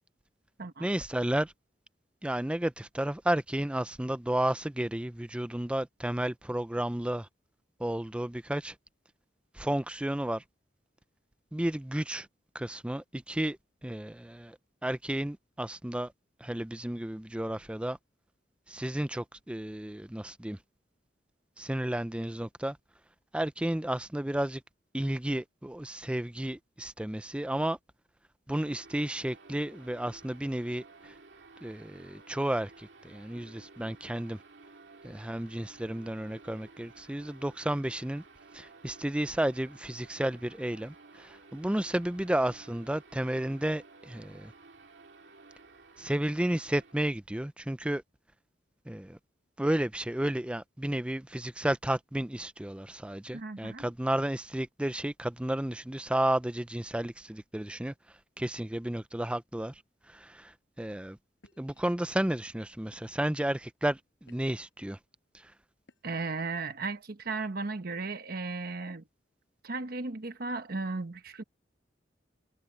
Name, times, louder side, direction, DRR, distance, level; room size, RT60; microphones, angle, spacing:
voice 1, 0.8-1.5 2.2-7.3 7.8-8.7 9.5-10.4 11.5-12.3 12.5-13.6 13.8-14.6 14.8-16.1 16.4-18.0 18.7-20.6 21.6-22.8 23.3-24.6 24.9-27.8 28.5-31.1 31.6-34.4 35.0-38.2 38.5-44.5 46.0-48.0 48.9-49.2 49.6-57.9 58.4-59.7 60.1-60.5 60.8-61.2 61.6-65.0 65.4-65.5, right 1 dB, 5° right, 0.4 m, -32 dB
sound 1, 28.6-47.0, right 3 dB, 70° right, 2.7 m, -55 dB
voice 2, 53.3-53.9 66.0-69.0 69.6-71.4, right 3 dB, 55° right, 1.0 m, -35 dB
sound 2, 60.5-60.8 61.4-61.8 62.5-62.6 62.9-63.4 63.9-64.7 65.8-66.3, left 2 dB, 70° left, 5.9 m, -63 dB
head